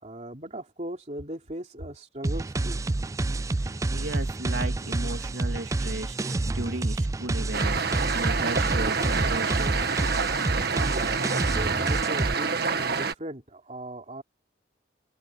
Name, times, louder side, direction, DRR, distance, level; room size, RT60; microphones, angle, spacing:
voice 1, 0.0-2.8 10.9-14.2, right 1 dB, 35° right, 3.6 m, -38 dB
sound 1, 2.2-12.3, right 2 dB, 15° right, 0.3 m, -28 dB
voice 2, 3.6-9.8, right 2 dB, 75° right, 2.9 m, -36 dB
sound 2, 7.5-13.1, right 5 dB, 55° right, 1.7 m, -27 dB
head